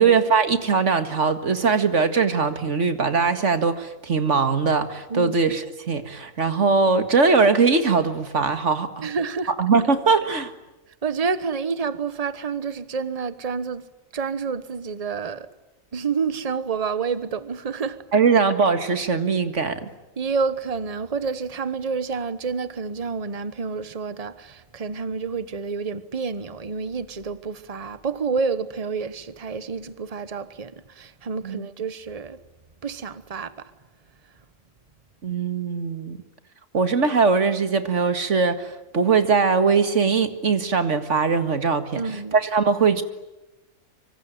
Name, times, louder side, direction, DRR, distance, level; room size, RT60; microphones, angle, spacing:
voice 1, 0.0-9.1 9.6-10.5 18.1-19.9 31.4-31.7 35.2-36.2 36.7-43.0, right 5 dB, 55° right, 2.2 m, -21 dB
voice 2, 9.0-9.5 11.0-13.8 14.1-15.5 15.9-18.0 20.2-32.4 32.8-33.7 41.9-42.4, right 5 dB, 25° right, 1.2 m, -29 dB
25.5 x 25.0 x 9.3 m
omnidirectional pair, 1.5 m